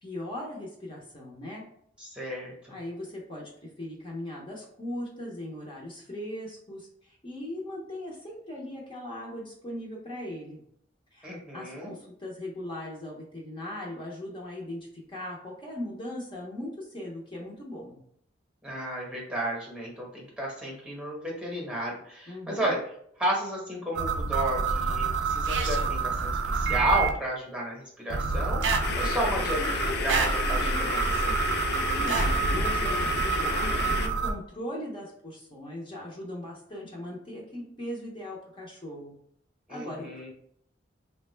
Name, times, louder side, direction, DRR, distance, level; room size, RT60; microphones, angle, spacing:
voice 1, 0.0-1.6 2.7-10.6 11.1-14.8 15.1-18.0 22.3-22.8 32.0-39.1 39.7-40.1, left 1 dB, 25° left, -3 dB, 0.7 m, -39 dB
voice 2, 2.0-2.8 11.2-11.9 18.6-22.9 23.2-31.3 39.7-40.3, right 1 dB, 5° right, -3 dB, 0.9 m, -32 dB
sound 1, 23.9-27.1 28.1-34.3, right 4 dB, 75° right, 0.4 m, -27 dB
sound 2, 28.8-34.1, left 5 dB, 60° left, 0.4 m, -32 dB
3.5 x 2.2 x 3.1 m, 0.68 s
head